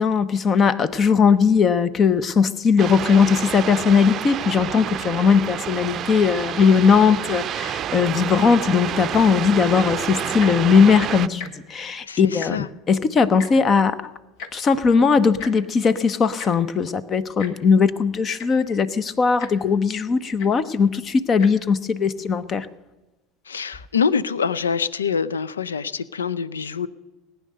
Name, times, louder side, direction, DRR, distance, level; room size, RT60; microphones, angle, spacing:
voice 1, 0.0-14.1 14.5-22.7, left 6 dB, 35° left, 16 dB, 0.9 m, -19 dB
sound 1, 2.8-11.3, right 10 dB, 40° right, 0.6 m, -29 dB
Tick-tock, 10.3-10.7 11.3-11.5 11.8-11.9 12.2-12.8 13.4-13.5 14.4-14.5 15.4-15.5 16.4-16.5 17.4-17.5 18.1-18.2 18.4-18.7 19.4-19.5 20.4-20.5 21.3-21.5 22.2-22.3, left 6 dB, 60° left, 1.5 m, -36 dB
voice 2, 12.0-12.7 23.5-26.9, left 6 dB, 80° left, 19 dB, 0.5 m, -25 dB
18.5 x 9.5 x 6.6 m, 1.1 s
figure-of-eight pair, 75°, 0 cm